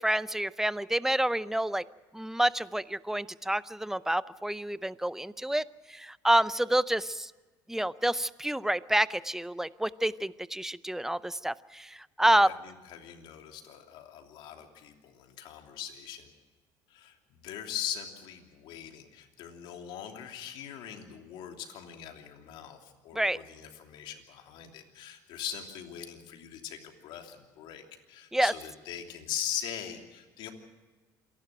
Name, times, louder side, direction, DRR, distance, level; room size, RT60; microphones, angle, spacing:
voice 1, 0.0-1.8 2.1-7.3 7.7-12.5 23.1-23.4 28.3-28.5, right 1 dB, 5° right, 17 dB, 0.6 m, -28 dB
voice 2, 12.3-16.3 16.9-17.1 17.4-30.5, left 9 dB, 70° left, 4 dB, 3.0 m, -41 dB
27.5 x 11.5 x 9.0 m, 1.3 s
supercardioid pair, 90°, 9 cm